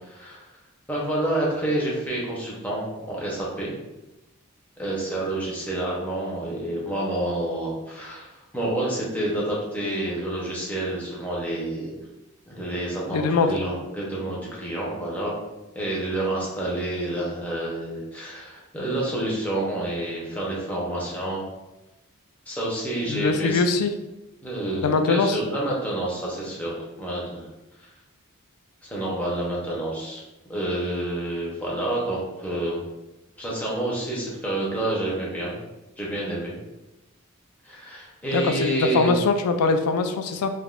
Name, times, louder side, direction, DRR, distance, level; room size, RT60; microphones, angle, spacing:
voice 1, 0.1-0.5 0.9-3.7 4.8-8.3 8.5-11.9 12.5-15.3 15.7-21.5 22.5-23.6 24.4-26.7 27.0-27.4 28.8-30.2 30.5-32.8 33.4-35.6 36.0-36.6 37.6-39.2, right 1 dB, 5° left, -5 dB, 0.6 m, -28 dB
voice 2, 13.1-13.5 23.1-23.9 24.8-25.4 38.3-40.5, left 4 dB, 80° left, 7 dB, 0.3 m, -22 dB
3.4 x 2.1 x 2.4 m, 1.0 s
head